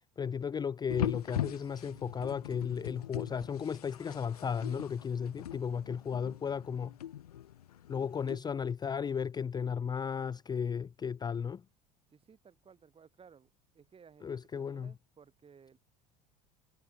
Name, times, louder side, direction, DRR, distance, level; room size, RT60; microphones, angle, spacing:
voice 1, 0.2-7.0 7.9-11.6 14.2-14.9, left 7 dB, 20° left, 0.6 m, -35 dB
sound 1, 0.9-8.4, left 11 dB, 80° left, 1.0 m, -41 dB
voice 2, 12.1-13.5 13.7-15.8, right 6 dB, 30° right, 7.1 m, -59 dB
figure-of-eight pair, 70°, 20 cm